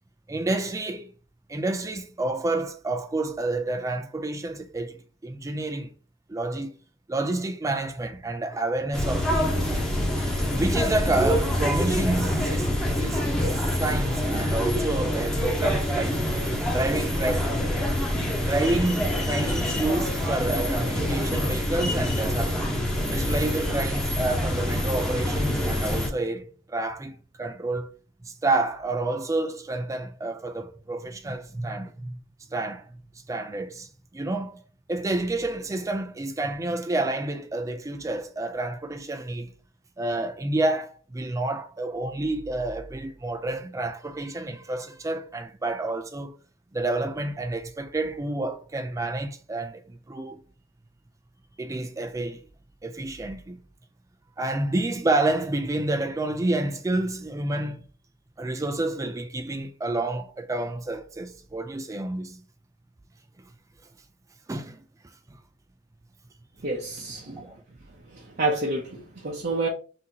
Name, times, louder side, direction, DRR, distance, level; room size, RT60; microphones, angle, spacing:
voice 1, 0.3-1.1 1.5-5.0 5.2-5.9 6.3-6.8 7.1-9.9 10.5-16.2 16.7-17.6 18.4-22.6 23.1-27.9 28.2-32.2 32.5-33.0 33.3-34.6 34.9-39.5 40.0-46.3 46.7-50.4 51.6-52.4 52.8-53.6 54.4-57.8 58.4-62.4 64.5-64.8 67.2-67.6, right 2 dB, 15° right, 0.4 m, -29 dB
sound 1, 8.9-26.1, left 1 dB, 5° left, 1.0 m, -26 dB
voice 2, 66.6-67.5 68.1-69.7, right 2 dB, 50° right, 0.8 m, -29 dB
5.8 x 2.8 x 2.9 m
head